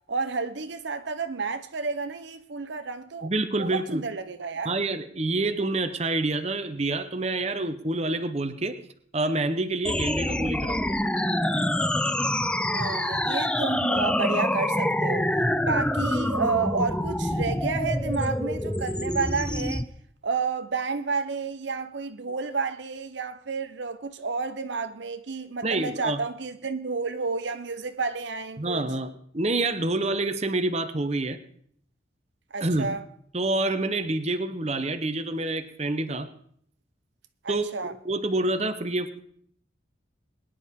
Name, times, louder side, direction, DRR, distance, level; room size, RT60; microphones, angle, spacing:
voice 1, 0.1-3.3 3.6-4.7 12.7-15.3 15.6-19.9 20.2-28.9 32.5-33.0 37.4-37.9, right 4 dB, 65° right, 0.8 m, -30 dB
voice 2, 3.2-4.0 4.6-8.8 9.1-11.0 25.6-26.2 28.6-31.4 32.6-32.9 33.3-36.3 37.5-37.7 38.0-39.2, right 2 dB, 35° right, 0.9 m, -27 dB
sound 1, 9.8-19.8, left 1 dB, 5° left, 0.4 m, -26 dB
22.0 x 10.5 x 3.7 m
head